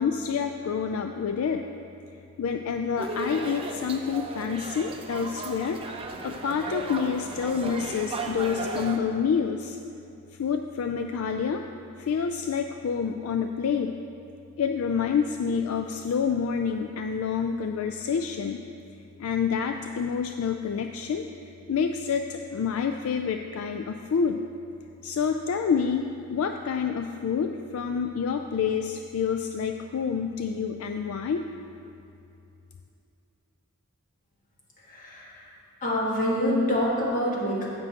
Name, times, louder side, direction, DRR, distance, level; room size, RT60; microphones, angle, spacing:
voice 1, 0.0-1.7 2.4-5.8 6.2-9.8 10.4-11.6 12.0-14.0 14.6-18.6 19.2-21.2 21.7-24.4 25.0-31.4, left 6 dB, 65° left, 5 dB, 0.3 m, -28 dB
sound 1, 3.0-9.0, right 2 dB, 25° right, 0.5 m, -35 dB
voice 2, 34.9-35.4 35.8-37.7, left 1 dB, 35° left, -5 dB, 1.7 m, -26 dB
15.0 x 6.2 x 2.9 m, 2.7 s
head